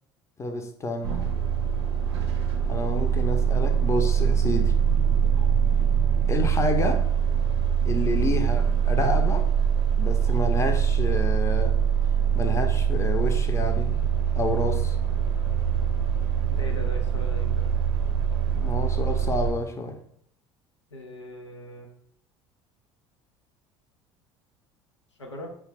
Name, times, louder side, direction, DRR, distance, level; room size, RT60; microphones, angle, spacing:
voice 1, 0.4-1.2 2.7-4.7 6.3-7.1 7.8-9.5 10.0-11.8 12.3-14.1 14.3-15.0 18.5-20.0, left 2 dB, 20° left, 5 dB, 0.7 m, -29 dB
sound 1, 1.0-19.5, right 8 dB, 65° right, 0.6 m, -23 dB
voice 2, 16.5-17.7 20.9-21.9 25.2-25.5, left 1 dB, 85° left, 1 dB, 0.7 m, -40 dB
4.8 x 3.3 x 3.3 m, 0.66 s
figure-of-eight pair, 65°, 15 cm